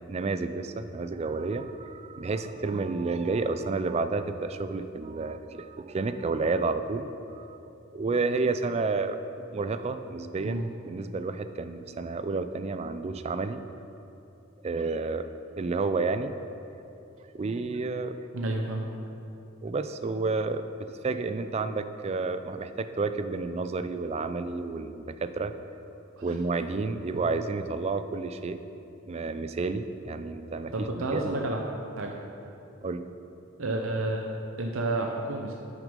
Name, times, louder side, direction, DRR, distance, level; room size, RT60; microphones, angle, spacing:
voice 1, 0.0-7.1 7.3-7.6 7.9-9.2 9.5-13.6 14.6-15.3 15.6-16.3 17.3-18.2 19.6-25.5 26.2-28.6 29.1-30.9 31.1-31.4 32.8-33.0, right 3 dB, 30° right, 10 dB, 0.3 m, -30 dB
voice 2, 18.3-18.9 26.2-26.4 27.1-27.2 30.7-31.6 32.0-32.1 33.6-35.5, right 2 dB, 85° right, 1 dB, 0.7 m, -30 dB
8.7 x 6.3 x 5.2 m, 2.9 s
head